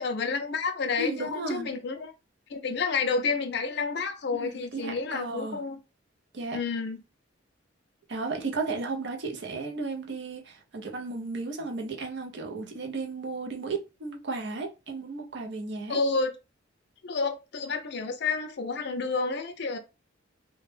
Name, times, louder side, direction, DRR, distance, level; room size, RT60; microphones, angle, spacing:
voice 1, 0.0-2.1 2.5-5.8 6.5-7.0 15.9-16.3 17.0-19.8, left 4 dB, 55° left, 0.4 m, -30 dB
voice 2, 1.0-1.7 4.4-5.6 6.3-6.6 8.1-16.0, right 3 dB, 60° right, 0.5 m, -34 dB
2.1 x 2.1 x 3.2 m
head